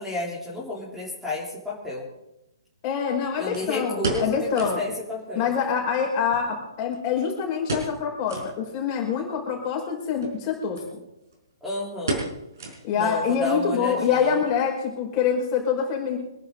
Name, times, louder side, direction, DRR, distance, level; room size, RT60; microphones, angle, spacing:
voice 1, 0.0-2.1 3.4-5.5 11.6-12.3 12.9-14.4, left 2 dB, ahead, -7 dB, 3.7 m, -31 dB
sound 1, 1.4-1.5 3.5-4.9 5.2-5.3 5.6-5.7 6.3-7.2 7.6-8.0 8.3-8.5 9.0-9.1 10.1-10.4 10.7-10.9 11.2-11.5 12.1-13.1 13.4-13.5 14.1-14.4 14.7-14.8, right 3 dB, 55° right, 5.1 m, -32 dB
voice 2, 2.8-4.8 5.3-11.0 12.8-16.2, left 7 dB, 30° left, -1 dB, 5.4 m, -25 dB
25.5 x 10.5 x 3.9 m, 0.90 s
figure-of-eight pair, 125°, 2 cm